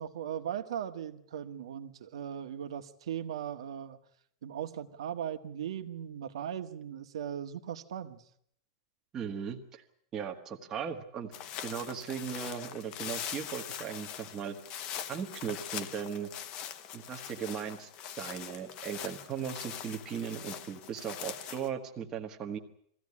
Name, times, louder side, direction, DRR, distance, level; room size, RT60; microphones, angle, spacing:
voice 1, 0.0-4.0 4.4-8.2, right 9 dB, 80° right, 8 dB, 1.6 m, -38 dB
voice 2, 9.1-9.8 10.1-11.3 11.6-14.6 15.1-16.3 16.9-17.9 18.2-22.6, right 7 dB, 20° right, 3 dB, 1.4 m, -38 dB
sound 1, 11.3-21.7, left 9 dB, 30° left, 1.0 m, -42 dB
22.5 x 15.5 x 9.7 m, 0.69 s
supercardioid pair, 175°, 3 cm